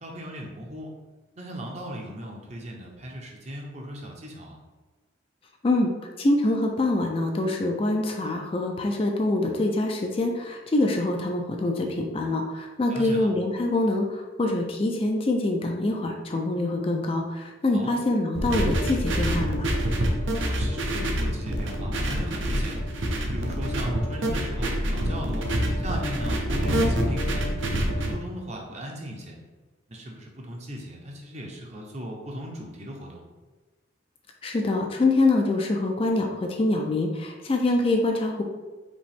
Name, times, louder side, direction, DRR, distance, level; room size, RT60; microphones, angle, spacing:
voice 1, 0.0-0.9 1.4-4.6 12.9-13.3 17.7-17.9 20.4-22.8 23.2-27.6 28.1-29.4 29.9-33.2, equal, 35° right, 0 dB, 0.7 m, -37 dB
voice 2, 6.2-19.7 34.4-38.4, left 2 dB, 30° left, 2 dB, 0.3 m, -25 dB
sound 1, 18.3-28.1, equal, 75° right, 0.7 m, -26 dB
5.1 x 3.0 x 3.4 m, 1.3 s
head